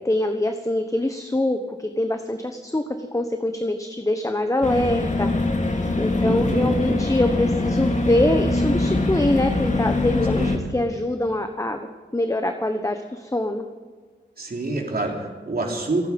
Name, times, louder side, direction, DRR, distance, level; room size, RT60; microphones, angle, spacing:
voice 1, 0.0-5.3 6.0-11.9 12.1-13.6, left 1 dB, 15° left, 6 dB, 1.1 m, -24 dB
sound 1, 4.6-10.6, left 2 dB, 40° left, 2.2 m, -23 dB
voice 2, 6.2-6.8 10.4-10.6 14.4-16.1, right 2 dB, 55° right, 0 dB, 3.5 m, -27 dB
28.0 x 9.4 x 5.3 m, 1.5 s
wide cardioid pair, 80°, 19 cm